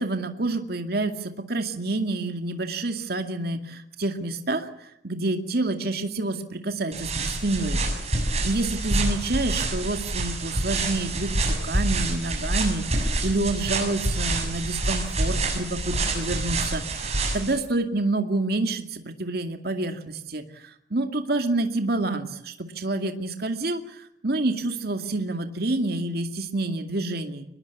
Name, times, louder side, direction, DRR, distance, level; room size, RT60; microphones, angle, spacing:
voice 1, 0.0-7.8 8.4-27.4, right 2 dB, 55° right, 6 dB, 2.2 m, -28 dB
sound 1, 6.9-17.5, right 2 dB, 35° right, 7.2 m, -27 dB
24.0 x 20.5 x 8.5 m, 0.76 s
head